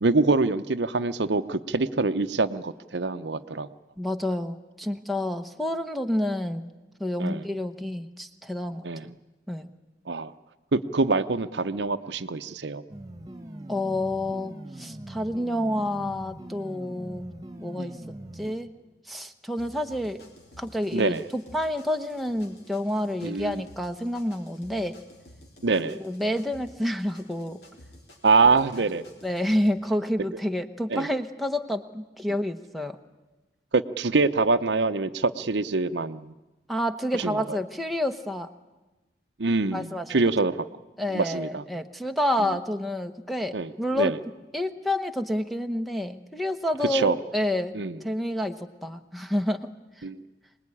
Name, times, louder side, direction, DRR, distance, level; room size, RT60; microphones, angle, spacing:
voice 1, 0.0-3.7 7.2-7.4 8.8-9.1 10.1-10.3 10.7-12.8 17.8-17.9 20.9-21.2 23.2-23.6 25.6-26.0 28.2-29.0 30.9-31.1 33.7-36.3 37.2-37.4 39.4-40.7 41.1-41.6 42.4-42.5 43.5-44.2 46.9-47.2 47.7-48.0 50.0-50.2, right 3 dB, 75° right, 12 dB, 0.8 m, -25 dB
voice 2, 4.0-6.7 7.0-8.9 9.5-9.7 13.7-17.3 17.6-17.9 18.4-18.7 19.1-20.2 20.6-24.9 25.9-27.6 29.2-33.0 36.7-38.5 39.7-40.2 41.0-44.1 44.5-47.7 48.0-48.5 48.8-49.6, left 1 dB, ahead, 4 dB, 1.0 m, -29 dB
sound 1, 12.9-18.5, right 1 dB, 20° right, 1.6 m, -41 dB
sound 2, 19.6-29.7, left 1 dB, 65° left, 3.6 m, -52 dB
25.0 x 19.5 x 9.9 m, 1.1 s
head